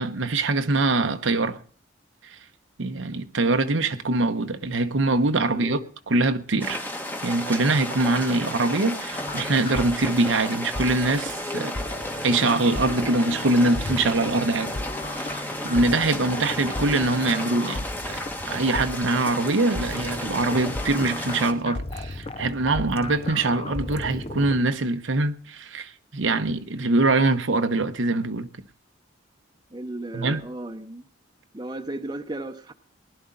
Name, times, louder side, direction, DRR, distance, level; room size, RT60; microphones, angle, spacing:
voice 1, 0.0-1.6 2.2-2.4 2.8-6.8 7.2-11.8 12.2-14.8 15.1-18.2 18.5-28.5 30.1-30.4, right 2 dB, 80° right, 1.0 m, -23 dB
voice 2, 5.3-5.9 15.5-15.9 16.2-16.8 29.7-31.0 31.5-32.7, right 1 dB, 20° right, 0.9 m, -36 dB
sound 1, 6.6-21.5, left 1 dB, 10° left, 1.2 m, -33 dB
sound 2, 9.1-24.6, left 2 dB, 30° left, 0.6 m, -35 dB
19.5 x 11.5 x 4.0 m
head